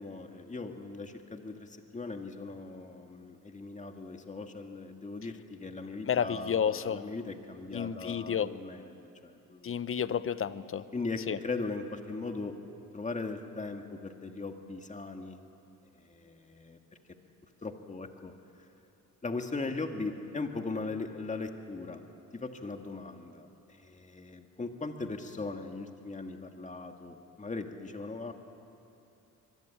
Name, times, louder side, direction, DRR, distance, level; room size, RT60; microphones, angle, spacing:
voice 1, 0.0-9.8 10.9-12.6 12.9-15.4 16.0-16.8 17.6-18.3 19.2-22.0 22.3-28.3, left 3 dB, 20° left, 5 dB, 2.0 m, -39 dB
voice 2, 6.1-7.0 7.7-8.5 9.6-10.9 11.3-11.4, left 8 dB, 35° left, 14 dB, 0.9 m, -31 dB
25.0 x 23.0 x 9.0 m, 2.9 s
cardioid pair, 115°, 36 cm